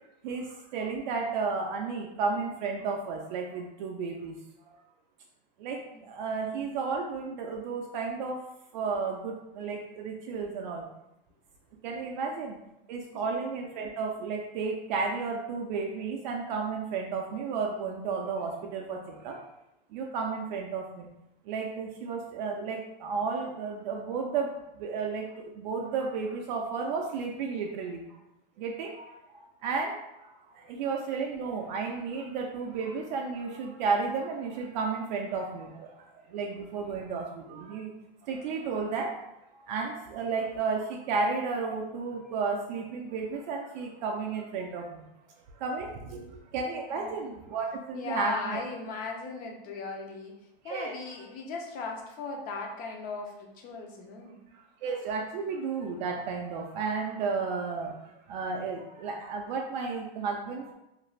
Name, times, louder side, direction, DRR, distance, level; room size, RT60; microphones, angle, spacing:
voice 1, 0.7-4.3 5.6-5.8 6.1-8.3 8.7-10.8 11.8-12.6 12.9-19.0 19.2-19.3 19.9-21.0 21.5-24.5 24.8-25.2 25.6-28.0 28.6-28.9 29.6-29.9 30.7-35.7 36.3-37.9 38.3-39.1 39.7-44.8 45.6-45.9 46.5-48.6 50.7-50.9 54.8-57.9 58.3-60.7, right 4 dB, 50° right, 0 dB, 0.4 m, -32 dB
voice 2, 47.9-50.4 50.6-54.4, left 4 dB, 30° left, 1 dB, 0.5 m, -38 dB
2.5 x 2.3 x 3.0 m, 0.88 s
hypercardioid pair, 130°, 29 cm